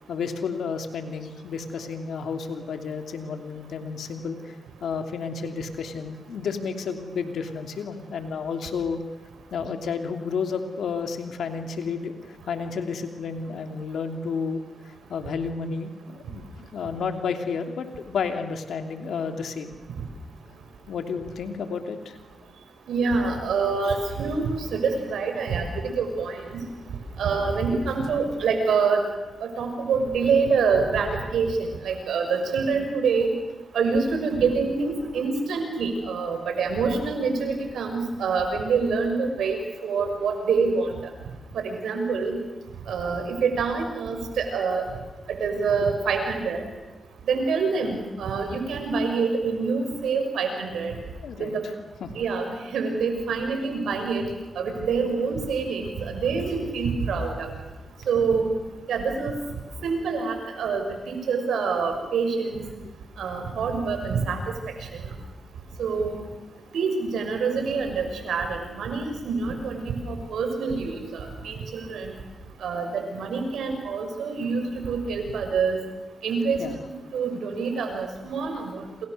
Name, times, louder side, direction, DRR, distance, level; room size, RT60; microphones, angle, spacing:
voice 1, 0.1-4.5 4.8-9.0 9.5-14.6 15.1-19.7 20.9-22.2 51.2-51.5 52.0-52.1 76.6-76.8, left 5 dB, 80° left, 6 dB, 2.9 m, -31 dB
voice 2, 22.9-26.6 27.2-29.0 29.4-33.3 33.7-39.6 39.8-40.9 41.5-42.4 42.9-44.8 45.3-46.6 47.3-50.9 51.4-51.5 52.1-54.2 54.6-57.5 58.1-58.5 58.9-59.3 59.8-62.6 63.2-64.4 64.9-65.0 65.8-66.2 66.7-72.1 72.6-75.8 76.2-78.8, right 5 dB, 85° right, 5 dB, 6.3 m, -26 dB
28.5 x 27.5 x 6.8 m, 1.1 s
cardioid pair, 55°, 0 cm